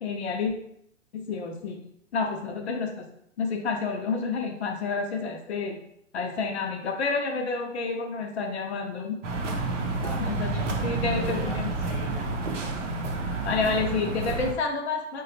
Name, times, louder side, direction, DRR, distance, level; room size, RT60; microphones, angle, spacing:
voice 1, 0.0-0.5 1.1-1.8 2.1-3.1 3.4-5.8 6.1-9.2 10.3-11.7 13.4-15.2, left 4 dB, 60° left, 3 dB, 0.5 m, -29 dB
sound 1, 9.2-14.5, right 3 dB, 75° right, 0.6 m, -29 dB
voice 2, 10.0-12.9, right 1 dB, ahead, -7 dB, 0.6 m, -43 dB
3.0 x 2.2 x 2.8 m, 0.73 s
figure-of-eight pair, 115°, 37 cm